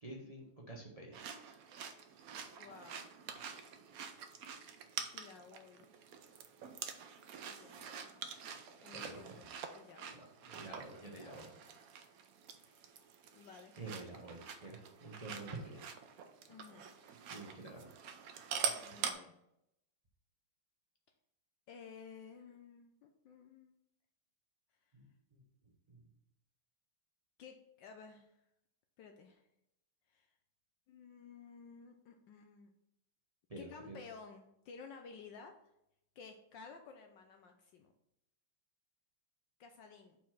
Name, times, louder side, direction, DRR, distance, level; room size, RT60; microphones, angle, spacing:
voice 1, 0.0-1.2 8.9-9.1 10.4-11.5 13.8-15.9 17.3-17.9 24.9-25.4 25.9-26.0 33.5-34.0, right 2 dB, 50° right, -1 dB, 0.4 m, -48 dB
Mastication-Cereales, 1.1-19.1, right 7 dB, 75° right, 0.8 m, -46 dB
voice 2, 2.5-3.1 5.1-6.0 7.4-8.2 8.8-10.3 11.0-11.7 12.6-12.9 13.3-13.8 16.5-16.9 18.8-19.4 21.7-23.8 27.4-28.4 29.0-29.4 30.1-30.3 30.9-32.7 33.6-35.6 36.2-37.9 39.6-40.2, left 5 dB, 70° left, 5 dB, 1.2 m, -55 dB
5.1 x 4.6 x 5.9 m, 0.81 s
omnidirectional pair, 2.3 m